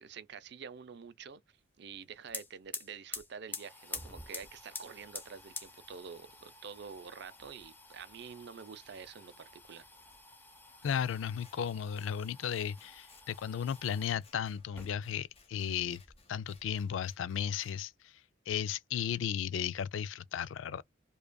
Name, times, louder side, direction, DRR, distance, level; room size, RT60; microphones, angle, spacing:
voice 1, 0.0-1.4 1.8-9.8, right 6 dB, 60° right, 0.5 m, -47 dB
sound 1, 1.9-2.0 2.2-14.2 14.6-15.4 15.7-16.7, left 3 dB, 10° left, 0.6 m, -48 dB
voice 2, 10.8-16.0 16.3-18.2 18.5-20.8, left 8 dB, 80° left, 0.4 m, -35 dB
Scissors, 10.8-17.8, left 4 dB, 30° left, 1.1 m, -64 dB
5.0 x 2.3 x 2.2 m
head